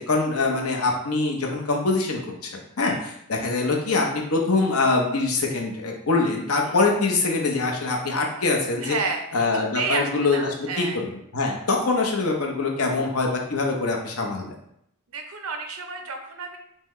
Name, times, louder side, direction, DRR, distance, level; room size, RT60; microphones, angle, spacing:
voice 1, 0.0-2.5 2.8-8.9 9.3-14.6, left 3 dB, 85° left, 0 dB, 0.8 m, -24 dB
voice 2, 8.8-9.2 9.5-11.0 15.1-16.6, right 4 dB, 75° right, 4 dB, 0.6 m, -31 dB
5.4 x 2.2 x 3.1 m, 0.75 s
head